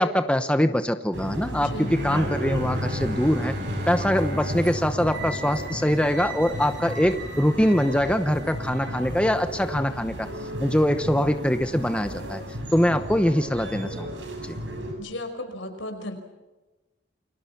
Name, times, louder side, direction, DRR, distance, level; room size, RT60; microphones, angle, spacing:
voice 1, 0.0-3.5 3.9-10.3 10.6-12.4 12.7-14.1 14.4-14.6, equal, 5° left, 8 dB, 0.9 m, -23 dB
sound 1, 1.1-14.9, right 1 dB, 65° right, 7.4 m, -33 dB
voice 2, 1.6-2.0 15.0-16.2, left 1 dB, 80° left, 6 dB, 5.3 m, -35 dB
Bowed string instrument, 1.9-7.1, equal, 45° right, 2.7 m, -35 dB
29.5 x 23.0 x 5.9 m, 1.1 s
head